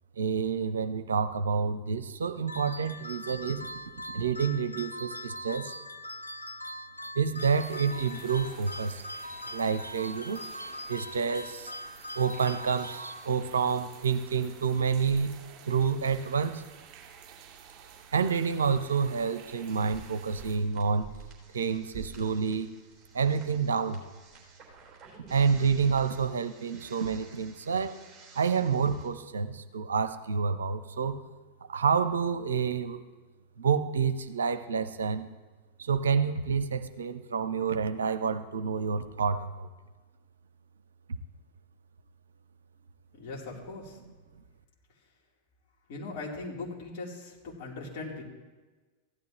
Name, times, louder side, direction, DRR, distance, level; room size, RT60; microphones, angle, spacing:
voice 1, 0.2-3.6 4.1-5.7 7.2-9.0 9.5-10.4 10.9-11.7 12.2-15.3 15.6-16.6 18.1-21.1 21.5-22.7 23.1-24.0 25.3-28.0 28.3-31.2 31.7-33.0 33.6-35.3 35.8-39.7, right 6 dB, 70° right, 11 dB, 0.7 m, -28 dB
sound 1, 2.5-13.7, left 1 dB, 90° left, 0.5 m, -41 dB
sound 2, 7.4-20.6, right 8 dB, 40° right, 3.0 m, -52 dB
sound 3, 19.7-29.1, right 5 dB, 15° right, 3.8 m, -51 dB
voice 2, 43.2-44.0 45.9-48.2, left 3 dB, 45° left, -4 dB, 3.5 m, -39 dB
16.0 x 12.0 x 3.1 m, 1.3 s
figure-of-eight pair, 90°, 0 cm